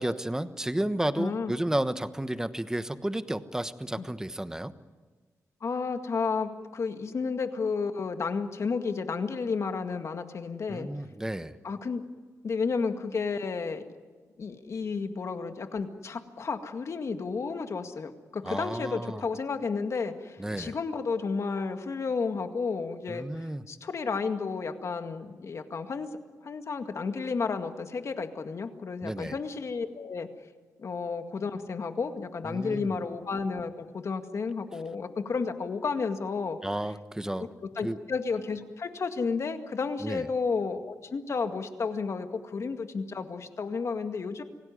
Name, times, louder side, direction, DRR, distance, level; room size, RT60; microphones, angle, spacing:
voice 1, 0.0-4.7 10.7-11.5 18.4-19.2 20.4-20.8 23.1-23.6 29.0-29.4 32.4-33.0 36.6-37.5 37.8-38.0 40.0-40.3, right 1 dB, 10° right, 11 dB, 1.1 m, -32 dB
voice 2, 1.2-1.5 4.0-4.1 5.6-10.9 11.6-12.0 12.4-13.8 14.4-23.3 23.7-26.1 26.4-30.3 30.8-36.6 37.4-44.4, left 4 dB, 55° left, 7 dB, 2.0 m, -32 dB
26.5 x 18.0 x 9.6 m, 1.4 s
cardioid pair, 90°, 6 cm